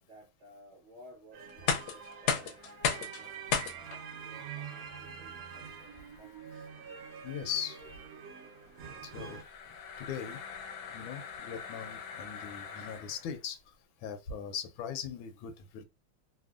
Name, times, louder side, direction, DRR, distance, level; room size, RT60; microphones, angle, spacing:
voice 1, 0.0-6.7, right 1 dB, 40° right, 1.3 m, -57 dB
sound 1, 1.3-9.4, right 7 dB, 65° right, 0.9 m, -46 dB
sound 2, 1.5-13.4, left 7 dB, 70° left, 0.9 m, -38 dB
voice 2, 7.2-7.8 9.0-9.4 10.0-10.4 10.9-13.6 14.0-15.8, left 7 dB, 90° left, 1.4 m, -39 dB
3.5 x 2.1 x 2.3 m
omnidirectional pair, 2.1 m